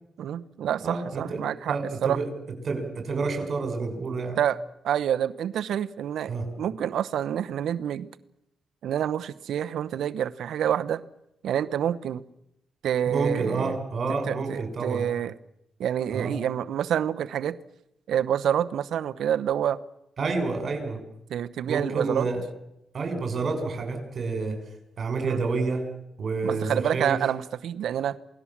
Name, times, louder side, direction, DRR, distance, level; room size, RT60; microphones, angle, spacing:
voice 1, 0.2-2.2 4.4-4.6 4.8-6.3 6.6-8.1 8.8-11.0 11.4-12.2 12.8-13.8 14.3-15.3 15.8-17.6 18.1-19.8 21.3-22.3 25.2-25.4 26.4-28.2, right 10 dB, 80° right, 12 dB, 0.9 m, -27 dB
voice 2, 0.8-2.3 2.6-4.4 6.3-6.5 13.1-15.0 16.1-16.4 20.2-21.0 21.7-22.4 22.9-24.6 25.0-25.9 26.2-27.2, right 4 dB, 50° right, 6 dB, 6.2 m, -29 dB
28.0 x 18.5 x 7.4 m, 0.83 s
cardioid pair, 100°, 0 cm